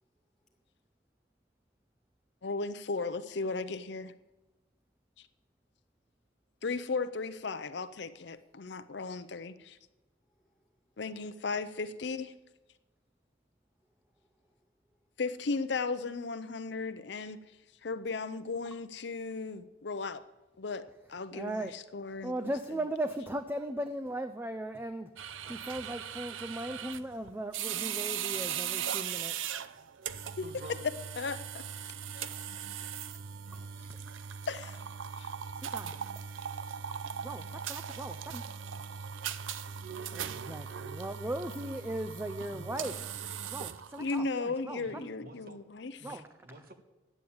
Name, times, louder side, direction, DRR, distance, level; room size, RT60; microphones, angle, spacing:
voice 1, 2.4-4.1 5.2-5.3 6.6-9.8 11.0-12.3 15.2-17.4 17.8-20.2 20.6-22.3 30.4-30.5 30.8-31.4 32.2-32.3 34.5-34.8 35.2-35.3 44.0-46.2, left 4 dB, 65° left, 12 dB, 0.6 m, -36 dB
voice 2, 10.3-10.7 14.2-14.7 31.8-32.4, left 1 dB, 5° left, -1 dB, 2.2 m, -77 dB
voice 3, 21.3-21.8 22.2-25.1 25.4-29.5 33.5-34.0 35.7-36.0 37.2-38.4 40.1-43.0 43.5-44.8 46.0-46.2, right 1 dB, 10° right, 8 dB, 0.4 m, -38 dB
sound 1, 25.2-44.2, right 8 dB, 90° right, 0.6 m, -39 dB
voice 4, 30.4-30.8 42.5-43.0 44.9-45.6 46.0-46.7, right 2 dB, 50° right, 7 dB, 1.3 m, -49 dB
11.0 x 9.2 x 8.6 m, 1.1 s
head